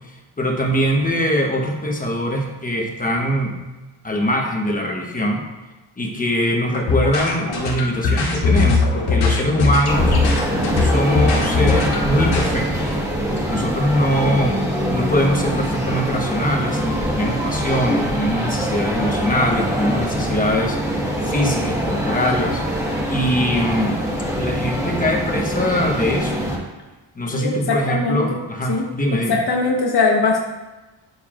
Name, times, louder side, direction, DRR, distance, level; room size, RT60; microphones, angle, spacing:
voice 1, 0.4-3.5 4.0-5.4 6.0-10.2 10.8-13.0 13.5-22.6 23.1-24.0 24.3-26.5 27.2-29.3, equal, 15° left, 1 dB, 1.0 m, -22 dB
sound 1, 6.7-12.5, left 3 dB, 85° left, 3.0 m, -20 dB
sound 2, 9.9-26.6, equal, 5° right, 1.4 m, -23 dB
voice 2, 27.3-28.4 28.7-30.4, left 4 dB, 50° left, -1 dB, 1.2 m, -21 dB
12.0 x 6.8 x 2.5 m, 1.1 s
wide cardioid pair, 170°, 49 cm